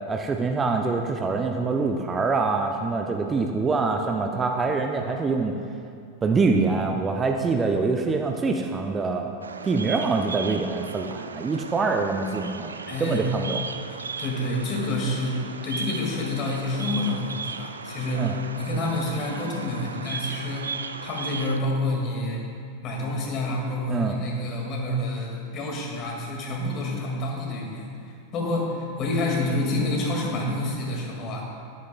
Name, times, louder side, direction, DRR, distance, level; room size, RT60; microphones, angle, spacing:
voice 1, 0.1-5.6 6.2-9.3 9.6-12.7 13.0-13.6 18.2-18.4 23.9-24.2, right 4 dB, 20° right, 3 dB, 0.5 m, -25 dB
Bird vocalization bird call bird song, 9.4-21.6, right 5 dB, 75° right, 0.4 m, -36 dB
voice 2, 12.9-13.2 13.9-20.7 21.0-22.4 22.8-31.5, left 1 dB, 35° left, -1 dB, 2.1 m, -28 dB
11.5 x 11.5 x 2.3 m, 2.4 s
figure-of-eight pair, 90°, 0 cm